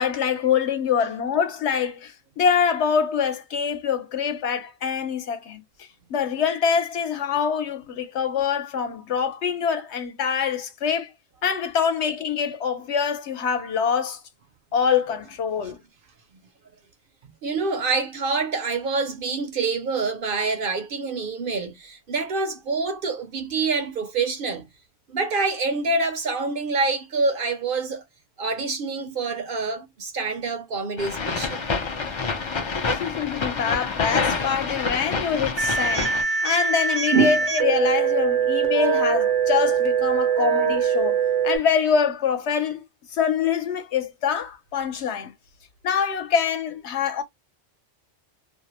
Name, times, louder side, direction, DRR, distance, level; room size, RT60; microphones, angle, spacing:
voice 1, 0.0-5.6 6.1-11.1 11.4-14.2 14.7-15.8 32.9-42.8 43.1-45.3 45.8-47.2, left 7 dB, 70° left, 1.0 m, -25 dB
voice 2, 17.4-24.7 25.1-28.0 28.4-31.6 37.1-37.4, right 4 dB, 60° right, 0.6 m, -26 dB
sound 1, 31.0-36.2, left 4 dB, 50° left, 0.3 m, -27 dB
sound 2, 35.6-41.6, right 7 dB, 75° right, 1.0 m, -22 dB
2.6 x 2.0 x 2.9 m
omnidirectional pair, 1.2 m